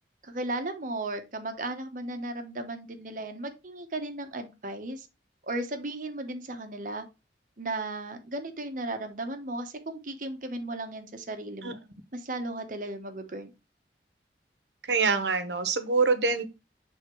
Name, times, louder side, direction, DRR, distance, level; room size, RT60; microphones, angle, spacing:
voice 1, 0.2-5.1 5.4-7.0 7.6-11.8 12.1-13.5, right 2 dB, 50° right, 1.0 m, -35 dB
voice 2, 14.9-16.4, right 4 dB, 80° right, 1.0 m, -25 dB
6.5 x 3.6 x 4.5 m
head